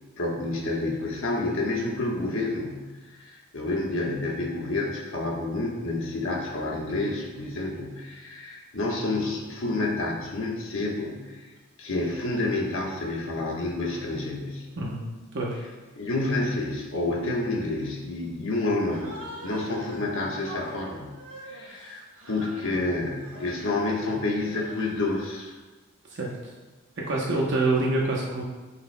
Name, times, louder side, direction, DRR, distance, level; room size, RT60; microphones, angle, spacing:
voice 1, 0.2-11.5 11.8-14.7 16.0-21.1 21.4-25.5, left 2 dB, 60° left, -2 dB, 1.3 m, -29 dB
voice 2, 14.8-15.1 15.3-15.6 26.1-26.3 27.0-28.4, right 2 dB, 55° right, -2 dB, 0.8 m, -26 dB
Human voice, 18.9-20.0 20.4-22.8 23.1-23.8 24.3-25.1, equal, 70° right, 1.4 m, -43 dB
11.5 x 5.7 x 2.2 m, 1.3 s
head